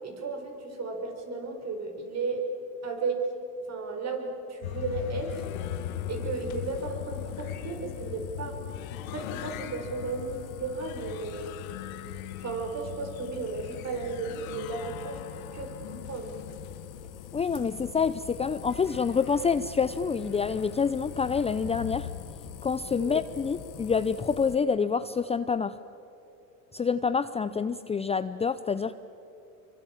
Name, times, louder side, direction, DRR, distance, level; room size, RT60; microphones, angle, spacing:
voice 1, 0.0-2.4 2.8-3.2 3.7-5.4 6.1-8.6 9.1-11.5 12.4-16.3 23.0-23.2, right 4 dB, 40° right, 3 dB, 6.1 m, -34 dB
sound 1, 4.6-22.2, left 11 dB, 85° left, 1.5 m, -40 dB
sound 2, 5.3-24.6, left 13 dB, 50° left, 1.3 m, -47 dB
voice 2, 17.3-22.1 22.6-25.7 26.7-29.0, left 5 dB, 15° left, 13 dB, 0.6 m, -27 dB
26.5 x 24.0 x 8.8 m, 2.8 s
supercardioid pair, 95°, 40 cm